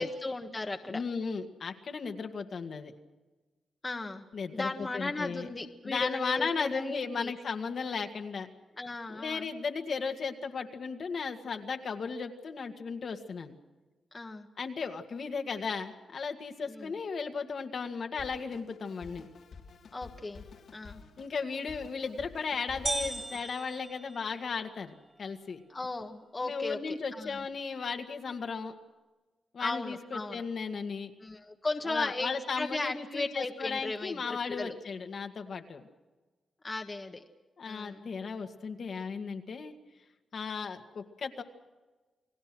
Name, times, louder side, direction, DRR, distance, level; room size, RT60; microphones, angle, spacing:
voice 1, 0.0-1.0 3.8-4.2 4.5-7.3 8.8-9.5 14.1-14.5 16.7-17.0 19.9-20.4 20.7-21.0 25.7-27.4 29.6-30.4 31.2-34.8 36.6-37.2 37.6-38.1, left 2 dB, 25° left, 4 dB, 1.5 m, -36 dB
voice 2, 0.9-2.9 4.3-5.5 5.8-8.5 9.1-13.6 14.6-19.3 21.2-25.6 26.4-28.8 29.5-31.1 31.9-35.9 37.6-39.7 40.3-41.4, left 5 dB, 55° left, 5 dB, 2.0 m, -35 dB
Drum kit, 18.2-23.6, left 5 dB, 80° left, 3.1 m, -50 dB
sound 1, 22.9-24.8, right 2 dB, 25° right, 1.1 m, -37 dB
30.0 x 19.5 x 6.2 m, 1.2 s
cardioid pair, 110°, 0 cm